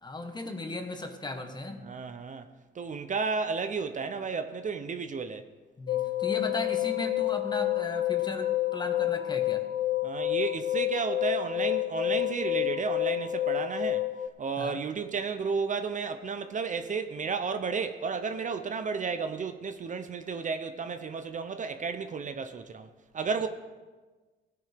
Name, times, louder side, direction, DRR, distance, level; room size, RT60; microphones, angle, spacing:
voice 1, 0.0-1.9 5.8-9.6 14.6-14.8, left 2 dB, 20° left, 1.4 m, -36 dB
voice 2, 1.8-2.5 2.7-5.4 10.0-14.1 14.4-22.9 23.1-23.5, right 5 dB, 40° right, 0.7 m, -32 dB
sound 1, 5.9-14.3, left 14 dB, 60° left, 0.7 m, -29 dB
16.5 x 9.5 x 3.5 m
cardioid pair, 90°, 20 cm